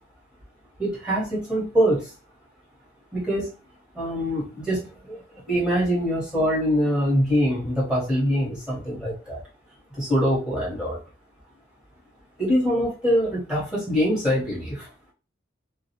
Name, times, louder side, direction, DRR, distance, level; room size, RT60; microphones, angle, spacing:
voice 1, 0.8-2.1 3.1-3.5 3.9-5.2 5.5-9.4 9.9-11.0 12.4-14.9, equal, 5° right, -8 dB, 1.2 m, -24 dB
2.4 x 2.3 x 2.8 m, 0.33 s
head